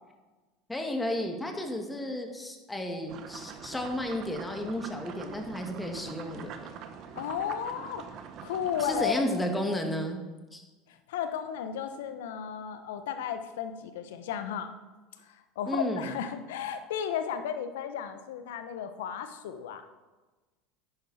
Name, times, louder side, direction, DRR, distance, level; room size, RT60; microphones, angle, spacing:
voice 1, 0.7-6.7 8.8-10.2 10.5-10.6 15.7-16.1, left 1 dB, 10° left, 3 dB, 2.1 m, -33 dB
sound 1, 3.1-9.1, right 7 dB, 55° right, 1.2 m, -44 dB
voice 2, 7.2-8.0 8.4-9.3 10.9-14.7 15.2-19.8, left 8 dB, 75° left, 9 dB, 1.0 m, -34 dB
10.5 x 10.5 x 4.3 m, 1.2 s
hypercardioid pair, 85°, 0 cm